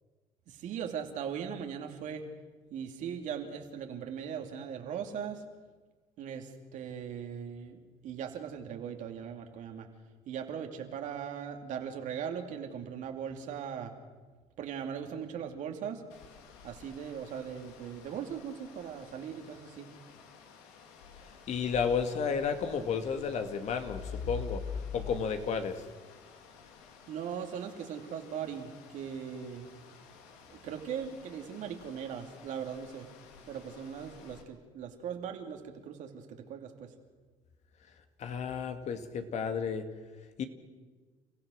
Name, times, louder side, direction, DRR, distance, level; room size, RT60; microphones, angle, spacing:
voice 1, 0.5-2.2 2.7-5.4 6.2-9.9 10.3-13.9 14.6-16.0 16.6-19.9 27.1-29.8 30.5-33.1 33.5-36.9, right 8 dB, 65° right, 4 dB, 2.8 m, -39 dB
sound 1, 16.1-34.4, left 6 dB, 85° left, 2.6 m, -47 dB
voice 2, 21.2-24.6 24.9-25.8 38.2-39.9 40.4-40.5, left 6 dB, 55° left, 7 dB, 2.3 m, -32 dB
30.0 x 16.0 x 6.5 m, 1.4 s
supercardioid pair, 80°, 14 cm